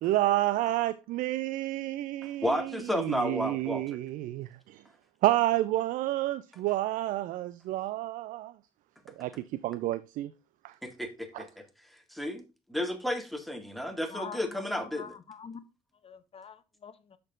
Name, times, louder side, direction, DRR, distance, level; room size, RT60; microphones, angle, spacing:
voice 1, 0.0-4.8 5.2-8.5 9.2-10.3 10.6-10.8 11.3-11.5, right 15 dB, 60° right, 0.4 m, -30 dB
voice 2, 2.2-4.0 10.8-11.6 12.1-12.4 12.7-15.2, left 1 dB, ahead, 1.8 m, -32 dB
voice 3, 14.1-14.4 14.7-15.6 16.0-17.2, left 6 dB, 40° left, 0.9 m, -45 dB
13.0 x 4.5 x 2.4 m
figure-of-eight pair, 45°, 16 cm